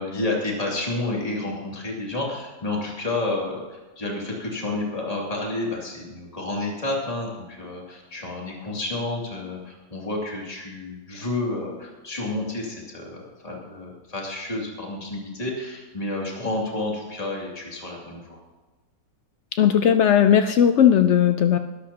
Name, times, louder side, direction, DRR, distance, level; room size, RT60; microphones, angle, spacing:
voice 1, 0.0-18.4, left 2 dB, 20° left, -3 dB, 2.6 m, -30 dB
voice 2, 19.6-21.6, left 9 dB, 90° left, 9 dB, 0.6 m, -17 dB
20.5 x 12.5 x 2.9 m, 1.2 s
omnidirectional pair, 1.9 m